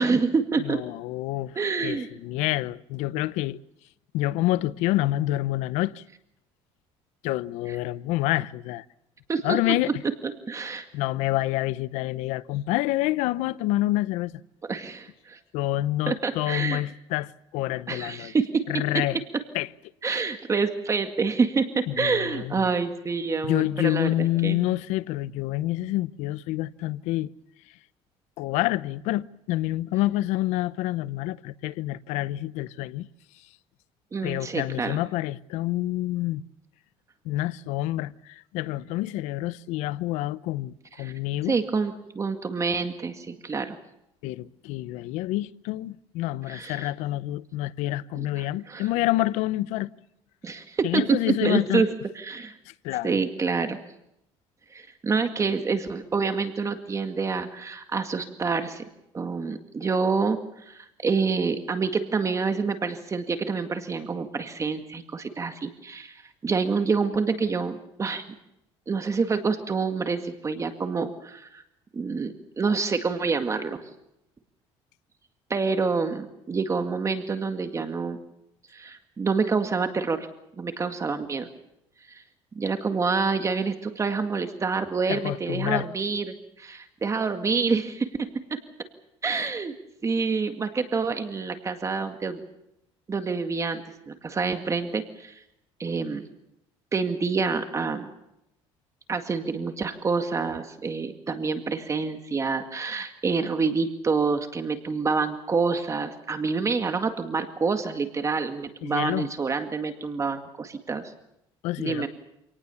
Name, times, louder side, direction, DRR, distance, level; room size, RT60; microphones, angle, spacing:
voice 1, 0.0-0.8 1.6-2.1 9.3-9.6 10.5-10.9 14.7-15.4 16.1-16.8 17.9-18.6 20.0-24.6 34.1-35.0 41.0-41.1 41.5-43.8 46.5-46.9 48.2-48.9 50.4-51.0 51.4-51.9 52.2-52.6 53.0-53.8 54.7-58.8 59.1-68.2 68.9-71.6 71.9-73.8 75.5-78.2 78.7-80.3 80.6-81.5 82.1-82.2 82.6-88.3 89.2-89.7 90.0-92.4 93.1-95.4 95.8-96.2 96.9-98.1 99.1-111.1 111.8-112.1, right 4 dB, 25° right, 2.0 m, -27 dB
voice 2, 0.6-1.5 1.8-3.6 4.1-6.0 7.2-8.8 9.4-9.9 10.9-14.3 15.5-18.3 18.7-19.2 19.5-19.7 21.9-22.7 23.4-27.3 28.4-33.1 34.2-36.4 37.2-41.5 44.2-49.9 50.8-51.9 52.7-53.2 85.1-85.8 108.8-109.3 111.6-112.1, left 16 dB, 85° left, 0.8 m, -27 dB
27.0 x 19.0 x 7.1 m
cardioid pair, 115°, 12 cm